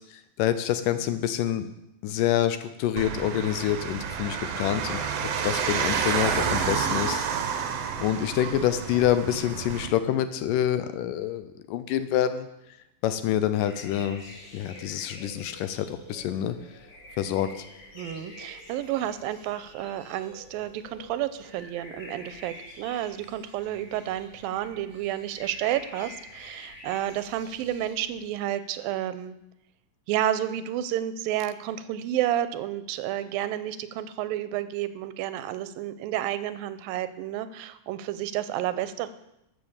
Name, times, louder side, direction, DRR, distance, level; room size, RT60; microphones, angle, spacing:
voice 1, 0.0-1.7 2.0-7.3 8.0-12.5 13.0-14.2 14.5-16.6 17.2-17.6, left 11 dB, 75° left, 11 dB, 2.1 m, -27 dB
sound 1, 3.0-9.9, right 7 dB, 65° right, 1.6 m, -29 dB
sound 2, 13.6-28.3, left 1 dB, 25° left, 1.6 m, -47 dB
voice 2, 18.0-29.4 30.1-39.1, right 12 dB, 90° right, 13 dB, 2.4 m, -31 dB
13.0 x 7.0 x 7.2 m, 0.84 s
omnidirectional pair, 4.1 m